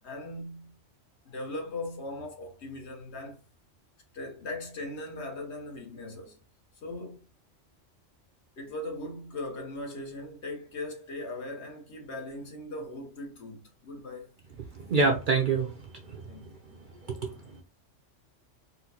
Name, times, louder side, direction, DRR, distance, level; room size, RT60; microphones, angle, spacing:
voice 1, 0.0-0.7 1.2-3.4 4.1-6.4 6.8-7.3 8.6-14.3 16.3-16.5, left 2 dB, 65° left, 1.2 m, -39 dB
voice 2, 14.7-15.7 16.0-16.5 17.0-17.3, right 4 dB, 55° right, 0.6 m, -27 dB
4.3 x 2.0 x 2.8 m
omnidirectional pair, 1.3 m